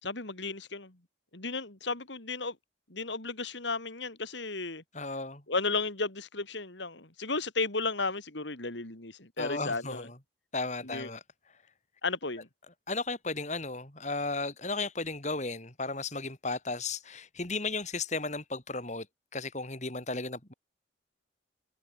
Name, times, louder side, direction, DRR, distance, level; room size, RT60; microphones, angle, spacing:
voice 1, 0.0-0.9 1.3-2.5 2.9-4.8 5.5-10.1 10.8-11.1 12.0-12.5, left 3 dB, 70° left, 3.0 m, -34 dB
voice 2, 4.9-5.4 9.4-10.1 10.5-11.2 12.9-19.1 19.3-20.5, left 3 dB, 35° left, 3.3 m, -34 dB
head